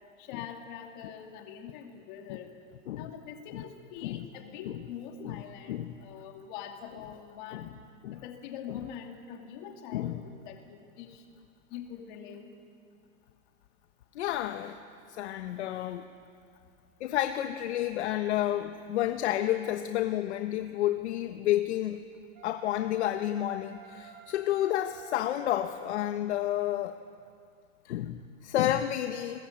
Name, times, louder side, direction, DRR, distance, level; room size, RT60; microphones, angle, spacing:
voice 1, 0.2-2.5 2.9-5.8 6.0-7.7 8.1-11.2 11.7-12.5, left 8 dB, 35° left, 3 dB, 2.7 m, -44 dB
voice 2, 14.1-14.8 15.1-16.0 17.0-22.0 22.4-26.9 27.8-29.4, left 13 dB, 55° left, 7 dB, 1.1 m, -30 dB
Wind instrument woodwind instrument, 22.4-26.1, right 7 dB, 25° right, 3.3 m, -51 dB
29.0 x 21.0 x 8.9 m, 2.3 s
supercardioid pair, 175°, 41 cm